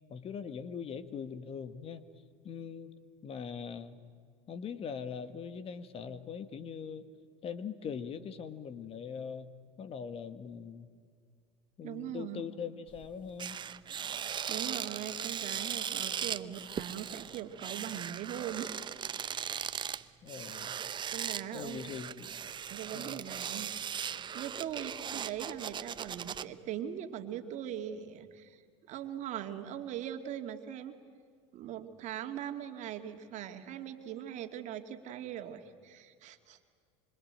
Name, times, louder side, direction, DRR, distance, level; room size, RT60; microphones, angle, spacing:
voice 1, 0.1-2.1 2.4-3.0 3.2-4.0 4.5-7.1 7.4-9.5 9.8-10.9 11.8-13.6 20.2-20.8 21.5-22.3 22.9-23.3, left 6 dB, 40° left, 12 dB, 1.7 m, -41 dB
voice 2, 11.8-12.4 14.5-18.8 19.7-20.0 21.1-21.9 22.7-23.7 24.0-28.6 28.9-31.0 31.5-36.6, right 10 dB, 55° right, 6 dB, 2.4 m, -41 dB
sound 1, 12.9-13.0 13.4-26.4, right 8 dB, 30° right, 0.9 m, -38 dB
25.5 x 25.5 x 9.0 m, 2.1 s
supercardioid pair, 90°, 15 cm